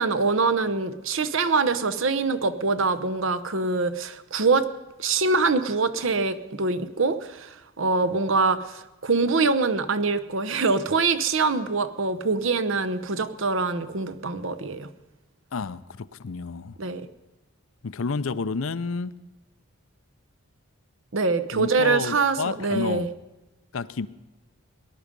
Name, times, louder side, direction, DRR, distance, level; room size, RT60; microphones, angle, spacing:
voice 1, 0.0-4.7 5.0-14.9 16.8-17.0 21.1-23.1, right 4 dB, 60° right, 12 dB, 0.8 m, -24 dB
voice 2, 15.5-16.8 17.8-19.1 21.5-23.1 23.7-24.1, left 4 dB, 65° left, 15 dB, 0.5 m, -30 dB
18.5 x 11.0 x 5.3 m, 1.1 s
head